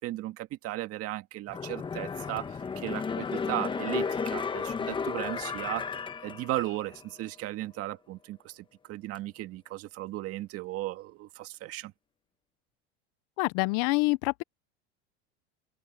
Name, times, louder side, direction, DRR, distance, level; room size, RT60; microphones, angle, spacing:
voice 1, 0.0-11.9, right 16 dB, 45° right, 2.0 m, -36 dB
sound 1, 1.5-7.1 7.4-7.5, left 5 dB, 15° left, 1.0 m, -33 dB
voice 2, 13.4-14.4, left 26 dB, 55° left, 0.7 m, -26 dB
supercardioid pair, 140°, 34 cm